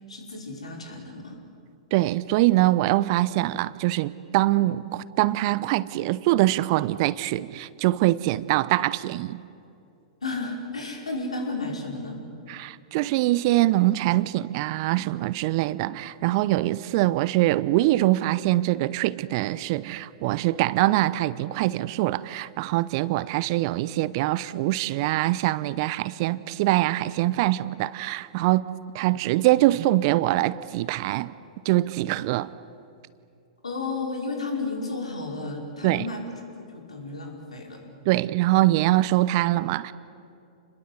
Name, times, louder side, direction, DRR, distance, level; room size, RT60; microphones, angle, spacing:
voice 1, 0.0-1.4 10.2-12.2 33.6-37.9, left 3 dB, 80° left, 1 dB, 5.3 m, -33 dB
voice 2, 1.9-9.4 12.5-28.6 28.9-31.4 31.6-32.5 35.8-36.1 38.0-39.9, right 17 dB, 45° right, 18 dB, 0.7 m, -23 dB
29.0 x 21.5 x 8.1 m, 2.6 s
figure-of-eight pair, 105°, 3 cm